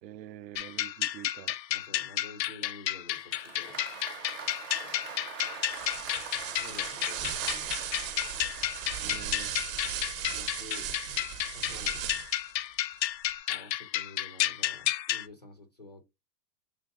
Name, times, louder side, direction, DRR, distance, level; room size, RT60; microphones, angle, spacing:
voice 1, 0.0-1.6 9.0-9.5, right 13 dB, 80° right, 0.6 m, -46 dB
sound 1, 0.6-15.3, left 13 dB, 85° left, 0.6 m, -32 dB
voice 2, 1.7-3.8 6.6-7.9 10.3-10.9 11.4-12.0 13.5-16.0, left 2 dB, 30° left, 0.3 m, -50 dB
Applause, 3.1-9.4, right 6 dB, 20° right, 0.6 m, -44 dB
sound 2, 5.6-12.5, right 11 dB, 50° right, 0.8 m, -37 dB
6.3 x 3.3 x 2.4 m
hypercardioid pair, 150°, 50 cm